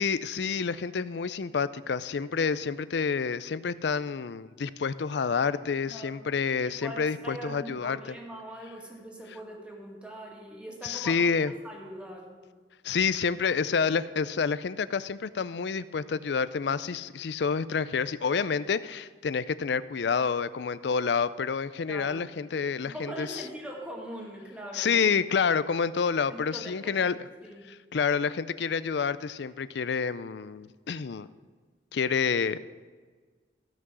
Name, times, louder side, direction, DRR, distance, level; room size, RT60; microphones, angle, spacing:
voice 1, 0.0-8.2 10.8-11.5 12.8-23.4 24.7-27.2 27.7-31.3 31.9-32.6, left 5 dB, 70° left, 16 dB, 0.5 m, -28 dB
voice 2, 5.9-6.3 6.6-11.3 11.6-12.3 21.9-22.3 22.9-25.0 26.3-27.0 27.4-27.6, right 1 dB, 5° right, -2 dB, 2.1 m, -42 dB
15.5 x 6.0 x 6.2 m, 1.5 s
head